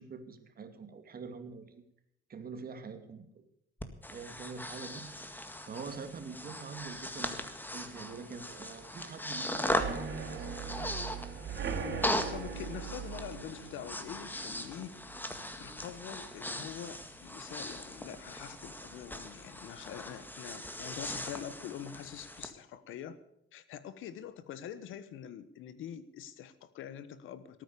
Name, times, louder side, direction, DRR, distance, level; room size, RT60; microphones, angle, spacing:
voice 1, 0.0-1.8 2.3-3.4 4.1-5.4 5.6-7.4 7.7-10.7, right 5 dB, 50° right, 8 dB, 2.4 m, -45 dB
Breathing, 3.8-22.5, left 1 dB, 10° left, 1.9 m, -39 dB
sound 1, 9.7-17.3 17.6-18.0 18.3-18.4 18.8-18.9, right 5 dB, 65° right, 3.6 m, -41 dB
voice 2, 12.3-15.3 15.6-23.2 23.5-27.6, left 9 dB, 85° left, 14 dB, 1.3 m, -45 dB
18.5 x 9.3 x 6.8 m, 0.76 s
cardioid pair, 90°, 20 cm